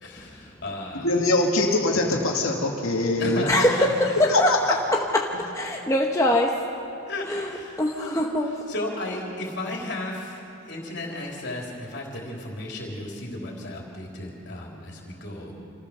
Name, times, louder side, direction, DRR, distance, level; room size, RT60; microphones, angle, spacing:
voice 1, 0.0-1.1 3.2-3.9 7.1-8.3 8.7-10.4 10.6-15.5, left 2 dB, 50° left, -1 dB, 3.8 m, -34 dB
voice 2, 0.9-3.4 4.3-4.6, left 2 dB, 75° left, 0 dB, 2.3 m, -23 dB
voice 3, 3.5-4.5 5.1-5.2 5.6-6.6 7.3-7.5 7.8-8.5, left 1 dB, 15° left, 0 dB, 1.0 m, -22 dB
27.0 x 15.0 x 6.7 m, 2.6 s
head